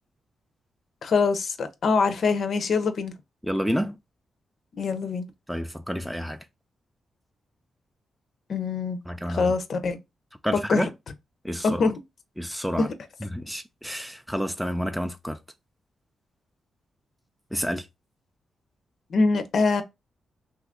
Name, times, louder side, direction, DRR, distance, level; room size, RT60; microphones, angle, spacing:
voice 1, 1.0-3.1 4.7-5.3 8.5-9.0 9.3-10.0 10.7-10.9 11.6-12.0 12.8-12.9 19.1-19.8, left 4 dB, 60° left, 0.5 m, -24 dB
voice 2, 3.4-4.0 5.5-6.5 9.1-9.4 10.4-10.9 11.4-11.8 12.4-12.9 13.2-15.4 17.5-17.9, equal, ahead, 0.3 m, -29 dB
2.7 x 2.4 x 3.5 m
cardioid pair, 85°, 0 cm